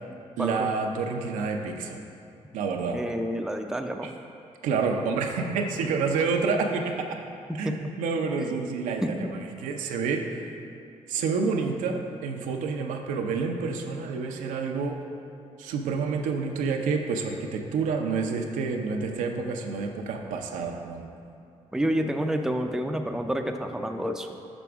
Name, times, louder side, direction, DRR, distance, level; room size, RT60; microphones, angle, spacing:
voice 1, 0.4-2.0 2.5-3.0 4.0-4.1 4.6-7.2 7.6-10.5 11.1-15.0 15.6-21.1, right 4 dB, 85° right, 2 dB, 0.5 m, -28 dB
voice 2, 2.9-4.1 7.5-7.8 8.4-8.6 9.0-9.3 21.7-24.4, equal, 5° right, 5 dB, 0.5 m, -29 dB
6.1 x 6.1 x 3.5 m, 2.7 s
supercardioid pair, 55°, 13 cm